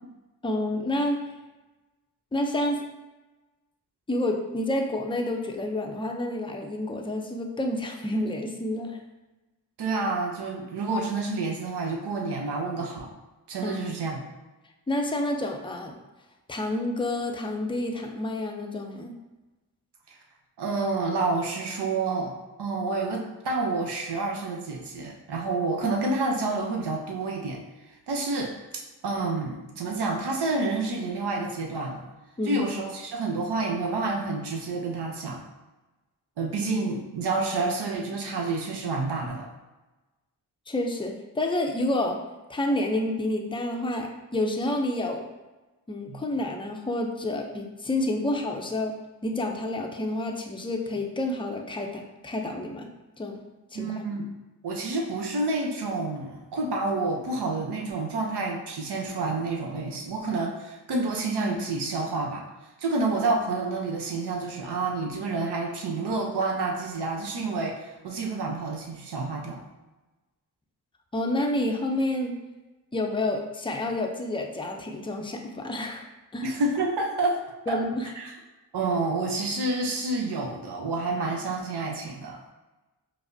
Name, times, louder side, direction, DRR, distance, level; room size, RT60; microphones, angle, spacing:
voice 1, 0.4-1.2 2.3-2.8 4.1-9.0 13.6-13.9 14.9-16.0 16.5-19.1 32.4-32.7 40.7-42.2 42.5-45.3 45.9-49.0 49.2-52.9 53.2-53.4 53.7-54.0 71.1-72.4 72.9-76.0 76.3-76.5 77.7-78.1, left 1 dB, 10° left, 3 dB, 0.5 m, -29 dB
voice 2, 9.8-13.1 13.5-14.2 20.6-27.6 28.1-32.0 32.4-35.4 36.4-39.5 46.1-46.2 53.7-54.3 54.6-62.4 62.8-69.6 76.4-77.4 77.7-77.8 78.2-78.3 78.7-82.5, right 3 dB, 65° right, 0 dB, 0.7 m, -29 dB
4.8 x 2.0 x 2.7 m, 1.1 s
supercardioid pair, 45°, 43 cm